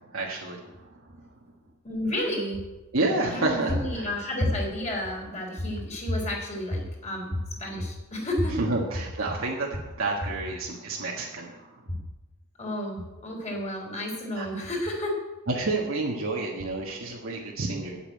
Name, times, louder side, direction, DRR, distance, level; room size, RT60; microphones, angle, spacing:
voice 1, 0.1-0.6 2.9-4.1 8.6-11.5 14.3-14.5 15.5-18.0, right 2 dB, 65° right, -2 dB, 1.4 m, -29 dB
voice 2, 1.8-2.6 3.3-8.6 11.9-12.0 12.6-15.2, left 1 dB, 35° left, -1 dB, 3.7 m, -30 dB
8.7 x 8.3 x 8.9 m, 1.1 s
head